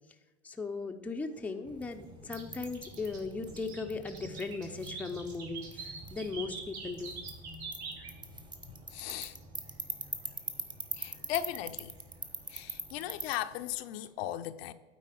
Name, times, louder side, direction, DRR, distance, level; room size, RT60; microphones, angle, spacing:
voice 1, 0.4-7.2, left 4 dB, 5° left, 0.6 m, -38 dB
sound 1, 1.4-14.1, right 4 dB, 70° right, 2.9 m, -47 dB
sound 2, 1.6-13.3, right 2 dB, 15° right, 1.0 m, -44 dB
voice 2, 8.9-9.3 11.0-11.9 12.5-14.7, left 13 dB, 60° left, 0.7 m, -37 dB
9.4 x 4.1 x 6.9 m
hypercardioid pair, 105°, 34 cm